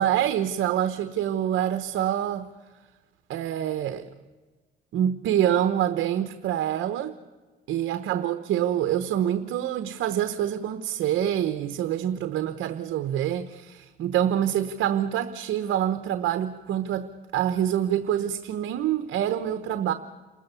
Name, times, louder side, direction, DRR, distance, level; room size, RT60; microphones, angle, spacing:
voice 1, 0.0-2.5 3.3-4.1 4.9-7.2 7.7-19.9, right 10 dB, 80° right, 9 dB, 1.0 m, -26 dB
28.0 x 14.0 x 6.9 m, 1.3 s
cardioid pair, 90°, 20 cm